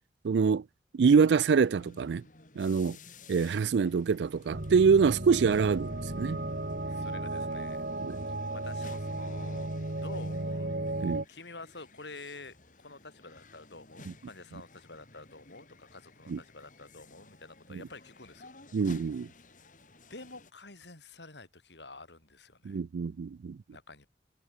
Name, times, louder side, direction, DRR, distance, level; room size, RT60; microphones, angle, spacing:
voice 1, 0.2-0.6 0.9-2.2 2.6-3.0 3.3-6.4 8.0-8.2 11.0-11.2 16.3-16.4 18.7-19.3 22.7-23.6, right 5 dB, 80° right, 0.4 m, -25 dB
sound 1, 1.5-20.5, left 3 dB, 50° left, 4.2 m, -55 dB
sound 2, 4.5-11.3, right 2 dB, 60° right, 2.0 m, -35 dB
voice 2, 6.9-7.8 8.2-10.7 11.0-18.5 20.1-22.8 23.7-24.1, left 3 dB, 85° left, 5.4 m, -49 dB
head